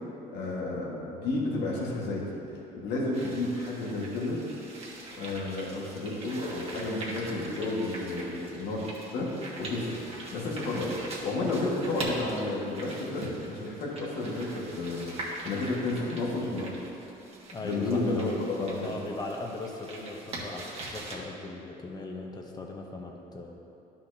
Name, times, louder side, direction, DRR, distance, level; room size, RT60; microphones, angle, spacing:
voice 1, 0.3-2.4 2.8-4.4 5.2-8.8 9.1-10.0 10.3-16.6 17.6-18.3 18.6-18.7, left 2 dB, 85° left, -4 dB, 1.7 m, -31 dB
sound 1, 3.1-21.1, right 2 dB, 35° right, 1.5 m, -42 dB
voice 2, 17.5-18.5 18.8-23.6, left 2 dB, 25° left, 1 dB, 0.9 m, -38 dB
11.5 x 5.7 x 2.8 m, 2.9 s
cardioid pair, 110°, 17 cm